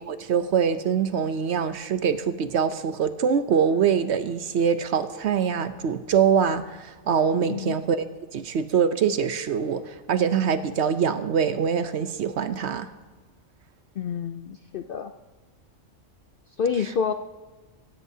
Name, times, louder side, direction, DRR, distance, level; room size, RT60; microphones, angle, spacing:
voice 1, 0.0-8.1 8.3-12.9, right 7 dB, 60° right, 11 dB, 0.8 m, -24 dB
voice 2, 7.5-7.8 14.0-15.1 16.6-17.1, left 6 dB, 65° left, 8 dB, 0.5 m, -28 dB
16.0 x 15.5 x 2.7 m, 1.3 s
omnidirectional pair, 1.4 m